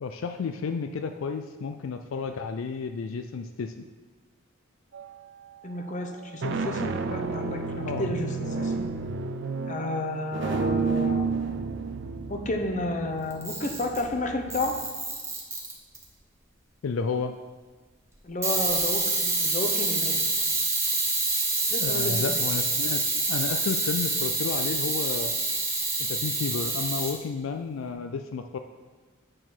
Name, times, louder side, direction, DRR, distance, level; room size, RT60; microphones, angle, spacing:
voice 1, 0.0-3.8 7.8-8.1 16.8-17.4 21.8-25.3 26.0-28.6, left 5 dB, 75° left, 7 dB, 0.4 m, -32 dB
sound 1, 4.9-5.4 6.1-14.8, right 4 dB, 60° right, 0.5 m, -31 dB
voice 2, 5.6-8.7 9.6-11.3 12.3-14.7 18.2-20.2 21.7-22.4, left 2 dB, 35° left, 4 dB, 0.8 m, -31 dB
Camera, 13.3-14.1 14.5-16.0 18.4-27.1, right 3 dB, 15° right, 1.4 m, -27 dB
8.9 x 4.2 x 6.1 m, 1.4 s
head